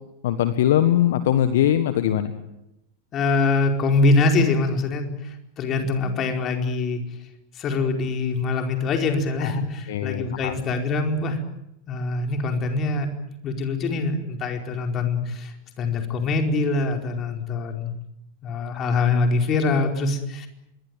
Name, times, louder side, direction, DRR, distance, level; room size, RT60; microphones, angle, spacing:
voice 1, 0.2-2.3 9.4-9.5 9.9-10.5, left 11 dB, 55° left, 11 dB, 1.6 m, -21 dB
voice 2, 3.1-7.0 7.5-11.4 11.9-13.1 13.4-18.0 18.4-20.5, left 3 dB, 30° left, 4 dB, 4.7 m, -24 dB
26.0 x 22.5 x 9.2 m, 0.87 s
figure-of-eight pair, 90°, 0 cm